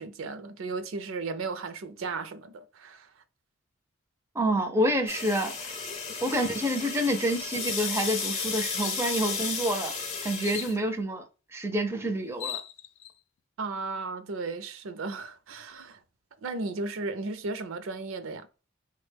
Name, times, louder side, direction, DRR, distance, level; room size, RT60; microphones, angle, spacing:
voice 1, 0.0-3.1 13.6-16.0 16.4-18.5, right 3 dB, 80° right, 0.4 m, -35 dB
voice 2, 4.3-5.8 6.2-9.9 10.2-11.3 11.5-12.6, equal, 15° right, 0.4 m, -28 dB
sound 1, 5.1-10.8, left 5 dB, 35° left, 0.7 m, -33 dB
sound 2, 7.9-8.0 8.4-8.5 8.8-9.4 10.4-10.8 11.9-12.0 12.2-13.1, left 11 dB, 60° left, 0.3 m, -39 dB
3.5 x 2.1 x 3.3 m
head